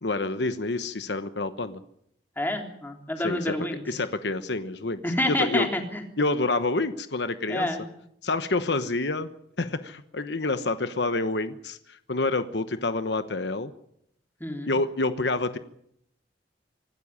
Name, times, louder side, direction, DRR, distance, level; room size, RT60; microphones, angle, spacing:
voice 1, 0.0-1.8 3.2-3.5 3.9-5.0 5.3-5.7 6.2-7.7 8.2-9.3 9.6-13.7 14.6-15.6, left 2 dB, 70° left, 11 dB, 1.1 m, -28 dB
voice 2, 2.4-3.8 5.0-6.0 7.5-7.8 14.4-14.7, left 1 dB, 10° left, 3 dB, 3.4 m, -28 dB
25.0 x 12.5 x 9.8 m, 0.74 s
head